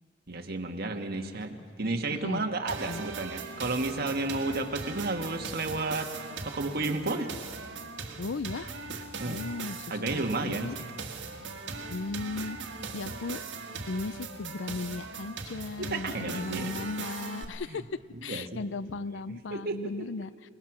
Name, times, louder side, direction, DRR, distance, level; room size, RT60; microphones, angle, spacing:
voice 1, 0.3-6.1 6.4-7.3 9.2-9.5 9.9-10.7 15.8-16.7 17.7-17.8 18.3-18.6 19.3-20.1, right 2 dB, 55° right, 4 dB, 1.7 m, -32 dB
voice 2, 1.8-2.4 2.8-3.0 8.2-8.7 9.2-10.8 11.9-12.6 12.9-13.4 13.9-17.8 18.2-20.3, left 3 dB, 85° left, 17 dB, 0.5 m, -36 dB
sound 1, 2.7-17.4, right 4 dB, 75° right, 1.9 m, -39 dB
28.5 x 19.5 x 6.1 m, 2.1 s
head